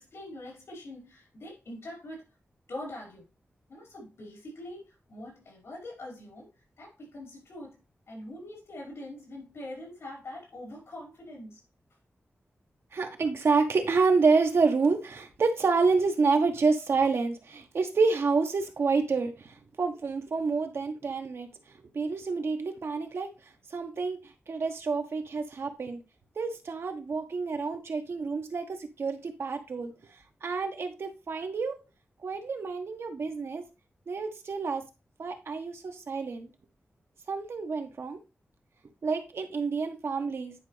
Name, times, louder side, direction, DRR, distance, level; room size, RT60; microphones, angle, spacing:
voice 1, 0.0-2.2 2.7-3.2 3.7-6.5 6.8-7.8 8.1-11.6 29.9-30.0, left 1 dB, 80° left, 4.8 m, -43 dB
voice 2, 12.9-21.5 21.9-23.3 23.7-24.2 24.5-26.0 26.4-29.9 30.4-31.8 32.2-33.6 34.1-34.8 35.2-36.5 37.3-38.2 39.0-40.5, right 4 dB, 70° right, 1.2 m, -28 dB
10.0 x 5.1 x 3.3 m
wide cardioid pair, 155°, 4 cm